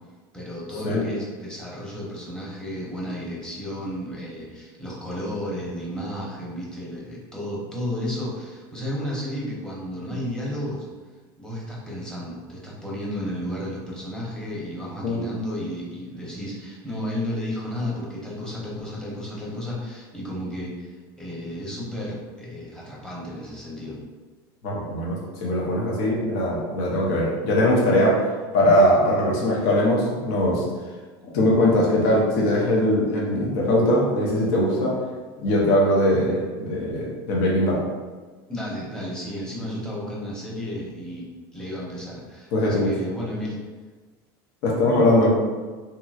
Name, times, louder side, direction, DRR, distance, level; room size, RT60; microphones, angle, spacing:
voice 1, 0.3-10.9 11.4-24.0 38.5-41.3 41.5-43.6, left 1 dB, 5° left, -5 dB, 0.9 m, -33 dB
voice 2, 24.6-30.6 31.3-35.0 35.4-37.8 42.5-42.9 44.6-45.4, left 1 dB, 65° left, -3 dB, 0.9 m, -21 dB
2.9 x 2.9 x 2.4 m, 1.4 s
supercardioid pair, 110°, 12 cm